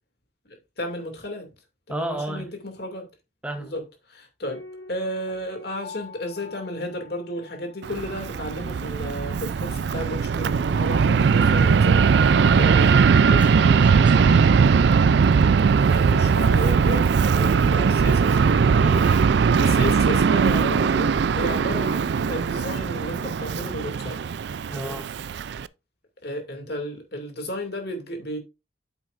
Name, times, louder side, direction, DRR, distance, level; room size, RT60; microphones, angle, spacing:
voice 1, 0.5-1.5 1.9-3.1 3.6-4.6 4.9-12.3 12.6-12.9 14.3-14.4 15.9-18.4 18.7-18.9 19.3-24.2 24.7-25.0 26.2-28.4, left 1 dB, 55° left, 2.4 m, -33 dB
voice 2, 1.9-2.5 3.4-3.7 12.5-12.7 13.2-14.8 18.8-19.3 24.7-25.1, right 1 dB, 5° right, 0.8 m, -34 dB
Piano, 4.5-8.3 8.5-8.6, left 3 dB, 75° left, 1.4 m, -44 dB
Fixed-wing aircraft airplane, 7.8-25.7, right 5 dB, 65° right, 0.4 m, -19 dB
8.9 x 7.9 x 2.5 m
head